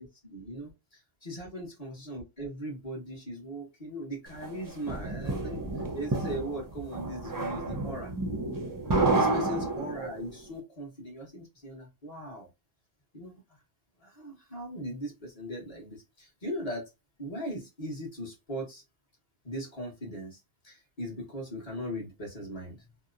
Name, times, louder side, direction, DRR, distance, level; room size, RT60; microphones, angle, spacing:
voice 1, 0.0-5.7 5.9-8.1 9.1-12.5 13.1-13.4 14.0-16.9 17.2-18.8 19.4-22.8, equal, 35° left, 1.0 m, -39 dB
sound 1, 4.4-10.3, right 2 dB, 30° right, 0.4 m, -30 dB
2.8 x 2.0 x 2.3 m
omnidirectional pair, 1.1 m